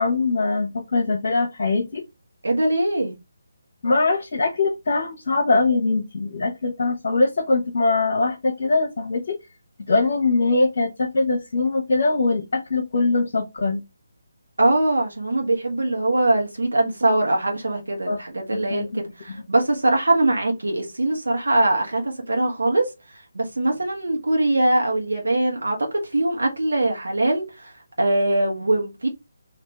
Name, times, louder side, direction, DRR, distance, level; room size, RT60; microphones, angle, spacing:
voice 1, 0.0-2.0 3.8-9.4 9.9-13.8 18.1-18.2 18.5-19.0, left 3 dB, 45° left, 1.0 m, -22 dB
voice 2, 2.4-3.2 14.6-29.1, right 2 dB, 65° right, 1.3 m, -22 dB
3.4 x 2.8 x 3.1 m
figure-of-eight pair, 145°, 0 cm